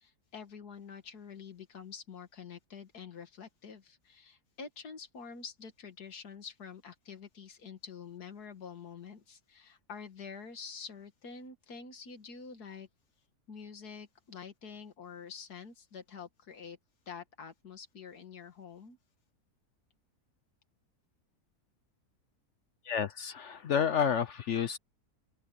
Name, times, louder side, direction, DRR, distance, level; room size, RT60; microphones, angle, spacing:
voice 1, 0.0-12.9 13.5-16.8 17.1-19.0, left 6 dB, 80° left, 2.4 m, -47 dB
voice 2, 22.8-24.8, left 7 dB, 55° left, 0.9 m, -30 dB
open air
omnidirectional pair, 1.6 m